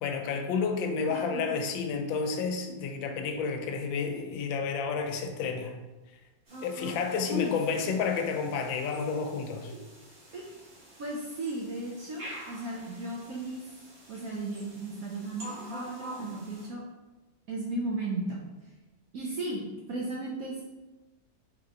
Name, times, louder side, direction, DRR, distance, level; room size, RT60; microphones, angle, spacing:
voice 1, 0.0-5.8 6.6-9.7, left 5 dB, 80° left, 5 dB, 1.3 m, -30 dB
voice 2, 1.1-1.4 7.3-7.5 9.7-9.8 10.3-10.5 11.0-13.6 14.1-16.8 17.5-18.4 19.1-20.6, right 2 dB, 70° right, -3 dB, 0.8 m, -35 dB
sound 1, 6.5-16.7, right 1 dB, 40° right, 1.1 m, -47 dB
4.1 x 2.9 x 3.7 m, 1.1 s
omnidirectional pair, 2.1 m